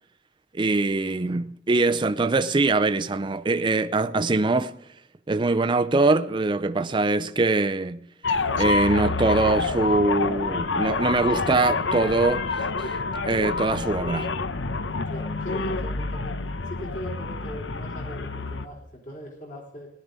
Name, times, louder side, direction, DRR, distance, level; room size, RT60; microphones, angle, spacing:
voice 1, 0.5-4.7 5.3-8.0 8.6-12.5 13.3-14.3, right 3 dB, 25° right, 0.5 m, -23 dB
sound 1, 8.2-18.7, left 3 dB, 90° left, 0.9 m, -27 dB
voice 2, 15.1-16.4 16.6-19.9, equal, 45° left, 3.9 m, -39 dB
18.0 x 11.5 x 4.0 m
head